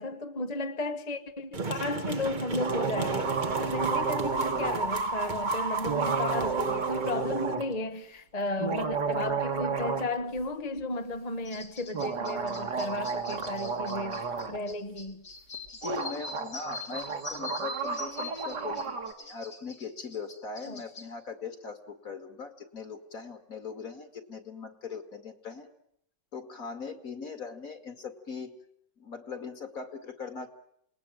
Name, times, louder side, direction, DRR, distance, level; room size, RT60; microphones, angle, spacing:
voice 1, 0.0-15.2 20.7-20.8, left 2 dB, 25° left, 1.1 m, -34 dB
sound 1, 1.5-7.5, right 4 dB, 30° right, 1.3 m, -32 dB
sound 2, 2.6-4.8 5.9-7.7 8.5-10.1 10.4-10.5 11.9-14.6 15.5-15.6 15.8-19.1, right 5 dB, 70° right, 2.6 m, -32 dB
sound 3, 11.5-21.1, left 3 dB, 80° left, 4.6 m, -44 dB
voice 2, 15.8-25.7 26.3-28.6 29.0-30.5, left 5 dB, 50° left, 2.8 m, -40 dB
28.0 x 20.0 x 9.2 m
omnidirectional pair, 1.9 m